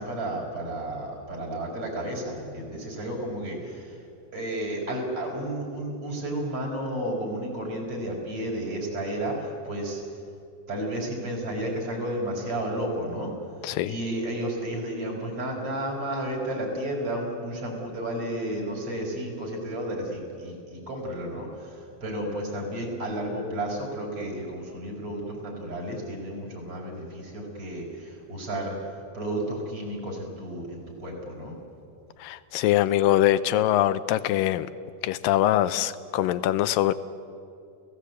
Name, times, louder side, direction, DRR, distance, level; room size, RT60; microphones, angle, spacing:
voice 1, 0.0-4.0 4.3-10.0 10.7-13.3 13.9-28.8 29.1-31.5, right 1 dB, 45° right, -1 dB, 6.0 m, -32 dB
voice 2, 13.6-14.0 32.2-34.7 35.0-36.9, left 13 dB, 90° left, 13 dB, 2.4 m, -23 dB
29.5 x 16.5 x 8.3 m, 2.5 s
omnidirectional pair, 3.9 m